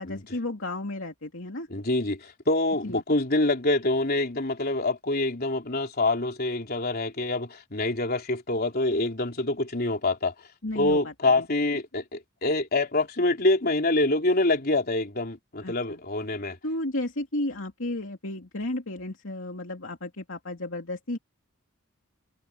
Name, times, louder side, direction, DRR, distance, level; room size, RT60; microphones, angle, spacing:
voice 1, 0.0-1.7 2.8-3.0 10.6-11.4 15.6-16.0 16.6-21.2, left 1 dB, 65° left, 3.0 m, -33 dB
voice 2, 1.7-10.3 10.7-16.6, left 2 dB, 45° left, 3.6 m, -26 dB
head